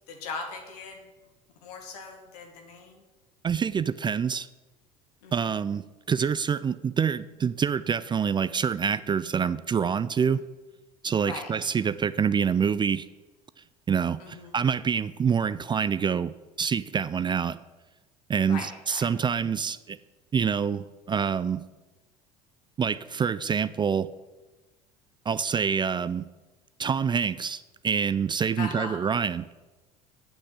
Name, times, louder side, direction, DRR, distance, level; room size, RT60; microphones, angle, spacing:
voice 1, 0.1-1.0 1.6-3.0 5.2-5.6 11.2-11.5 14.2-14.6 18.5-19.1 28.6-29.0, left 4 dB, 75° left, 4 dB, 2.0 m, -39 dB
voice 2, 3.4-4.5 5.3-10.4 11.0-13.1 13.9-17.6 18.3-20.0 20.3-21.6 22.8-24.1 25.3-26.3 26.8-29.5, right 7 dB, 25° right, 16 dB, 0.4 m, -26 dB
8.3 x 6.1 x 8.0 m, 1.2 s
hypercardioid pair, 70°, 20 cm